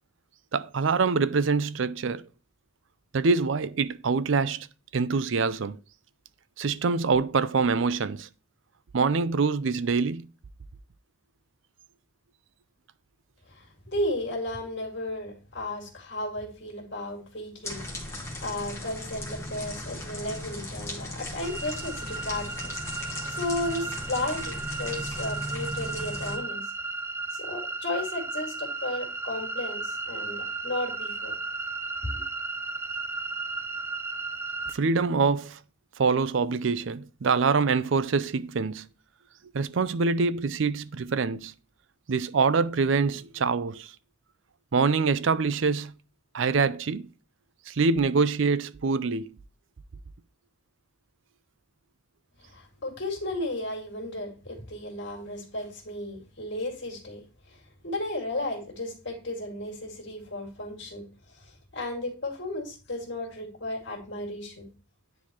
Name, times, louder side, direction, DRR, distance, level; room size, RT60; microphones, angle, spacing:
voice 1, 0.5-2.2 3.1-4.7 4.9-5.8 6.6-8.3 8.9-10.2 34.7-35.6 36.0-38.9 39.5-41.5 42.1-43.9 44.7-45.9 46.3-47.1 47.7-49.4, right 4 dB, 65° right, 0.5 m, -25 dB
voice 2, 13.5-26.6 27.3-31.4 52.4-57.6 57.8-61.0 61.4-64.7, left 1 dB, 60° left, 2.3 m, -34 dB
sound 1, 17.6-26.4, left 1 dB, 15° left, 1.5 m, -37 dB
sound 2, 21.4-34.8, right 3 dB, 10° right, 0.4 m, -35 dB
9.7 x 4.1 x 3.0 m
head